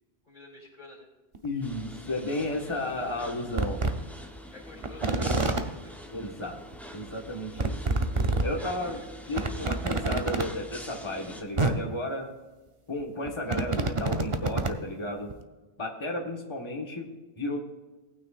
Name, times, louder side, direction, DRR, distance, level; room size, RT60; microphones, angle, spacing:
voice 1, 0.3-1.1 4.5-5.9 8.6-9.4, left 2 dB, 50° left, -2 dB, 3.0 m, -49 dB
sound 1, 1.3-1.5 2.5-2.6 3.1-3.2 3.6-3.9 4.8-5.6 6.7-6.8 7.0-7.1 7.6-8.4 8.9-9.0 9.3-10.4 11.3-11.4 11.6-11.7 13.0-14.8 15.3-15.4, right 3 dB, 35° right, 0.8 m, -27 dB
voice 2, 1.4-3.8 6.1-6.6 6.9-7.8 8.4-9.0 9.3-12.3 12.9-15.3 15.8-17.6, left 1 dB, 30° left, 0 dB, 1.5 m, -33 dB
sound 2, 1.6-11.4, equal, ahead, 0.9 m, -45 dB
18.5 x 9.2 x 2.5 m, 1.2 s
omnidirectional pair, 1.1 m